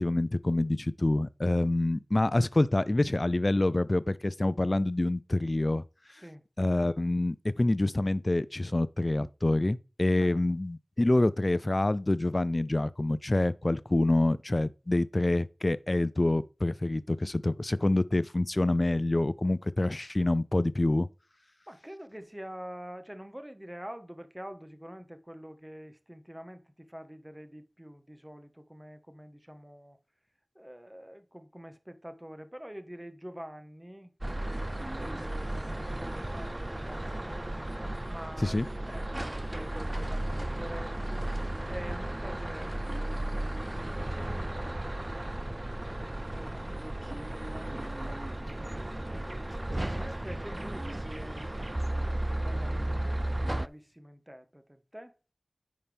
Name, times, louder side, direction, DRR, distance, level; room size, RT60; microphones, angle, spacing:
voice 1, 0.0-5.8 6.6-21.1 38.4-38.7, left 2 dB, 45° left, 0.5 m, -27 dB
voice 2, 21.7-30.0 30.5-37.5 38.1-41.3 41.7-45.1 46.3-49.5 49.8-55.2, equal, 15° right, 1.4 m, -47 dB
sound 1, 34.2-53.7, right 1 dB, 30° right, 0.4 m, -34 dB
sound 2, 47.8-53.9, right 1 dB, 50° right, 1.7 m, -56 dB
9.5 x 5.8 x 3.5 m
wide cardioid pair, 40°, 0 cm